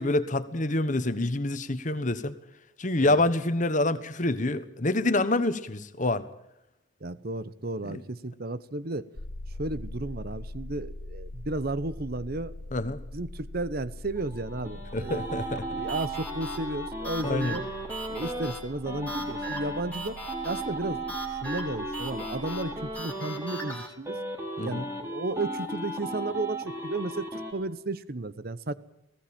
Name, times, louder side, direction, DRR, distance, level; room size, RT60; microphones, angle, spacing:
voice 1, 0.0-2.3 2.8-6.3 7.8-8.0 12.7-13.0 14.9-15.6 17.2-17.6 24.6-24.8, left 2 dB, 40° left, 1.3 m, -27 dB
voice 2, 7.0-9.1 9.5-12.5 13.1-15.2 15.7-17.6 18.1-20.2 20.4-24.2 24.6-28.7, right 2 dB, 50° right, 0.9 m, -33 dB
sound 1, 9.1-23.0, left 1 dB, 75° left, 1.2 m, -43 dB
sound 2, 14.2-18.5 18.9-23.7 24.0-27.5, right 1 dB, 15° right, 3.5 m, -36 dB
sound 3, 15.9-23.9, right 2 dB, 5° left, 3.4 m, -40 dB
19.0 x 16.0 x 8.9 m
head